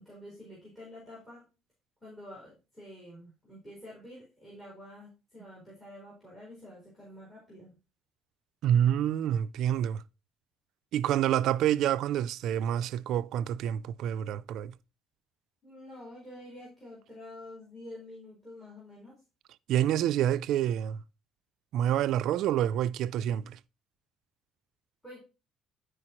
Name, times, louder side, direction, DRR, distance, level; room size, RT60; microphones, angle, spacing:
voice 1, 0.0-1.4 2.0-7.7 15.6-19.1 25.0-25.2, left 1 dB, 15° left, 4.1 m, -48 dB
voice 2, 8.6-10.0 10.9-14.7 19.7-21.0 21.7-23.6, right 11 dB, 65° right, 0.4 m, -27 dB
11.0 x 5.0 x 2.9 m
cardioid pair, 145°, 0 cm